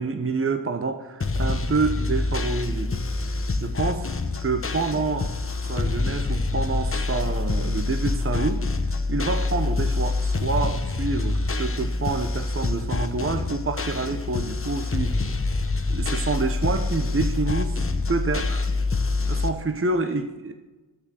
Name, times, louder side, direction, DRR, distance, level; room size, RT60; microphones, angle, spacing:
voice 1, 0.0-3.3 3.6-4.1 4.4-5.3 5.6-8.6 9.1-15.2 15.9-18.7 19.3-20.5, right 3 dB, 30° right, 7 dB, 1.0 m, -28 dB
sound 1, 1.2-19.5, left 3 dB, 30° left, 1.0 m, -26 dB
10.5 x 7.6 x 7.8 m, 1.2 s
cardioid pair, 60°, 47 cm